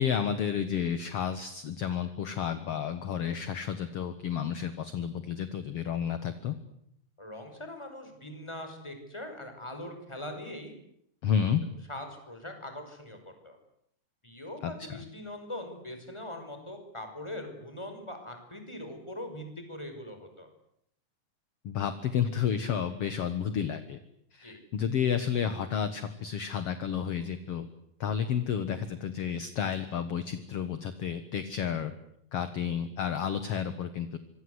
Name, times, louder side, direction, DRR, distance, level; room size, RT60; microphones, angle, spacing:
voice 1, 0.0-6.6 11.2-11.6 14.6-15.0 21.6-24.0 24.3-27.7 28.0-31.9 32.3-34.2, left 8 dB, 55° left, 11 dB, 2.1 m, -31 dB
voice 2, 7.2-10.7 11.9-13.2 13.4-13.6 14.2-20.5 24.4-24.6, left 1 dB, 10° left, 5 dB, 5.4 m, -41 dB
26.0 x 25.5 x 8.1 m, 0.74 s
omnidirectional pair, 3.8 m